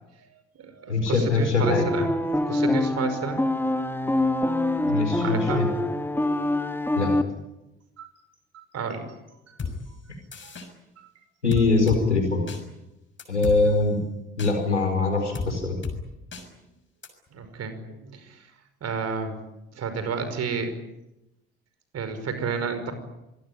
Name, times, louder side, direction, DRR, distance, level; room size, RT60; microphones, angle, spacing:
voice 1, 0.2-2.2 2.5-3.4 5.2-5.7 8.0-8.1 8.5-9.1 9.5-9.6 10.4-10.5 11.0-11.1 16.3-16.5 17.3-18.5 18.8-19.4 19.7-20.7 21.9-22.9, right 5 dB, 45° right, 9 dB, 5.5 m, -31 dB
voice 2, 0.9-1.8 4.9-5.7 7.0-7.1 11.4-12.4 13.3-14.0 14.4-15.8, left 3 dB, 85° left, 4 dB, 5.0 m, -22 dB
sound 1, 1.6-7.2, left 1 dB, 5° left, 2.0 m, -25 dB
sound 2, 9.6-9.7 10.3-10.7 11.5-12.0 12.5-12.6 13.2-13.6 14.4-14.5 15.3-15.5 15.8-16.0 16.3-16.4 17.0-17.1, left 5 dB, 35° left, 6.3 m, -32 dB
25.5 x 20.5 x 9.9 m, 0.93 s
figure-of-eight pair, 50°, 34 cm